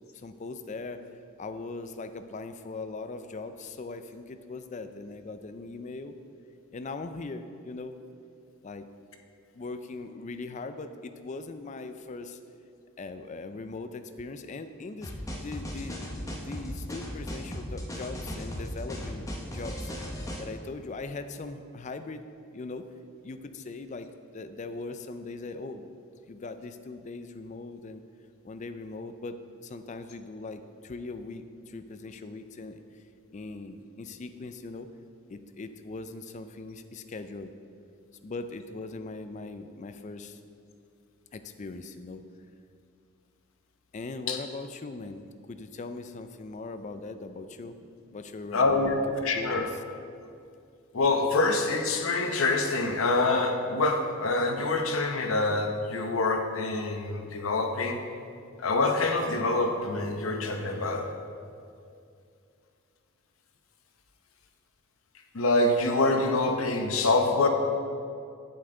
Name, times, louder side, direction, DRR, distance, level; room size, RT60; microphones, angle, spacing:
voice 1, 0.1-1.0 1.4-6.1 6.7-8.0 8.6-8.9 9.5-12.4 13.0-16.0 16.4-19.3 19.5-19.9 20.4-22.2 22.5-22.9 23.2-24.1 24.3-25.9 26.3-28.0 28.4-29.4 29.6-33.0 33.3-34.9 35.3-37.5 38.2-40.4 41.3-42.2 43.9-47.8 48.1-49.0 49.3-49.7, left 3 dB, 35° left, 9 dB, 0.4 m, -40 dB
sound 1, 15.0-20.4, equal, 15° left, 0.8 m, -37 dB
voice 2, 48.5-49.7 50.9-58.0 58.6-61.1 65.3-67.5, left 2 dB, 75° left, 4 dB, 0.8 m, -26 dB
8.6 x 7.9 x 3.8 m, 2.4 s
head